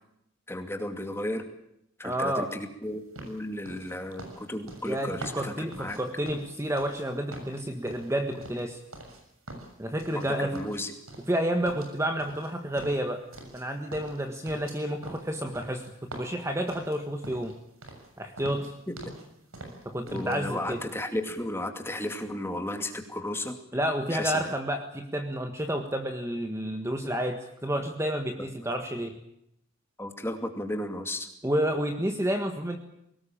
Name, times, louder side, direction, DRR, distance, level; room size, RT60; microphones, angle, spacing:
voice 1, 0.5-1.4 2.0-6.0 10.1-10.9 20.1-23.6 24.1-24.4 30.0-31.3, left 1 dB, 10° left, 6 dB, 2.5 m, -34 dB
voice 2, 2.0-2.5 4.8-8.8 9.8-10.6 11.3-13.2 13.5-15.8 16.1-17.5 18.2-18.7 19.9-20.8 23.7-29.1 31.4-32.8, right 1 dB, 15° right, 5 dB, 1.6 m, -30 dB
sound 1, 3.1-7.0 7.3-9.2 9.5-10.3 10.5-11.4 11.6-13.6 13.9-17.5 17.8-18.1 18.3-19.2 19.5-20.4 20.7-20.9, right 1 dB, 90° right, 6.8 m, -44 dB
22.5 x 19.0 x 8.8 m, 0.78 s
head